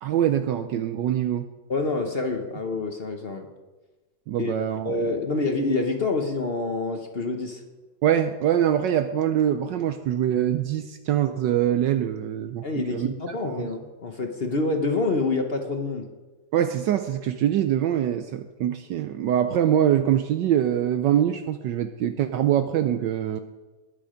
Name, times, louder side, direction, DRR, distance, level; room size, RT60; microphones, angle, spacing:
voice 1, 0.0-1.5 4.3-4.9 8.0-13.7 16.5-23.4, right 10 dB, 70° right, 9 dB, 1.2 m, -24 dB
voice 2, 1.7-3.5 4.4-4.5 4.8-7.6 12.6-16.0, left 3 dB, 45° left, 5 dB, 0.9 m, -27 dB
20.5 x 7.1 x 5.1 m, 1.2 s
omnidirectional pair, 2.2 m